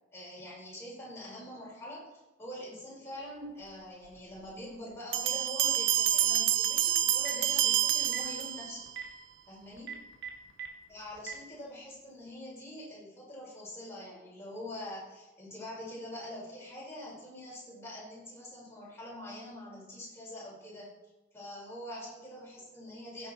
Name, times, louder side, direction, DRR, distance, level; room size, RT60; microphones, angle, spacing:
voice 1, 0.1-2.0 2.4-8.8 9.5-9.9 10.9-20.9 21.3-23.3, left 1 dB, 15° left, -6 dB, 5.1 m, -44 dB
sound 1, 5.1-8.9, right 11 dB, 80° right, 0.7 m, -28 dB
Telephone, 7.0-7.5 8.0-8.3 8.9-9.0 9.8-10.7 11.2-11.3, right 8 dB, 60° right, 1.9 m, -39 dB
16.5 x 7.6 x 4.5 m, 1.1 s
head